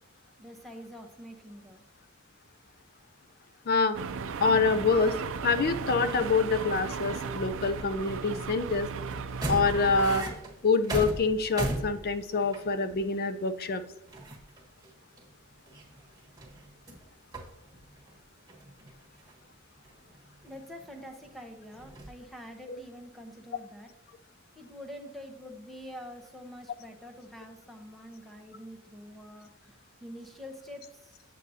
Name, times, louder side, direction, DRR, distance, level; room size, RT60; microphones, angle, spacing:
voice 1, 0.4-1.8 20.4-23.9 24.5-31.2, equal, ahead, 3 dB, 0.8 m, -46 dB
voice 2, 3.7-4.0 4.4-5.2 5.4-8.9 9.5-10.3 10.6-13.8 22.7-22.8, left 4 dB, 45° left, 11 dB, 0.4 m, -26 dB
sound 1, 3.9-10.2, right 5 dB, 60° right, 0.5 m, -36 dB
sound 2, 5.9-6.8 7.1-8.6 9.0-13.0 13.5-13.6 13.8-14.9 15.2-17.1 17.3-18.2 18.5-19.4 19.8-21.3 21.7-22.1, right 1 dB, 15° right, 1.4 m, -38 dB
8.2 x 7.5 x 2.7 m, 0.88 s
head